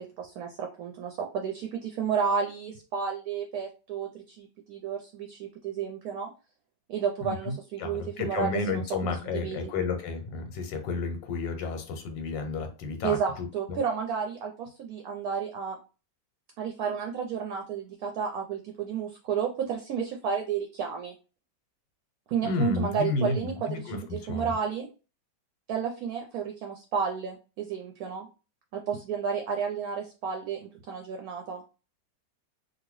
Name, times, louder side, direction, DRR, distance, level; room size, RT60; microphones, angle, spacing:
voice 1, 0.0-6.3 6.9-9.7 13.0-15.8 16.6-21.1 22.3-24.9 25.7-28.3 28.7-31.6, right 6 dB, 70° right, 2 dB, 0.9 m, -32 dB
voice 2, 7.2-13.8 22.4-24.5, left 3 dB, 90° left, 6 dB, 1.4 m, -32 dB
2.8 x 2.6 x 3.1 m, 0.32 s
omnidirectional pair, 1.9 m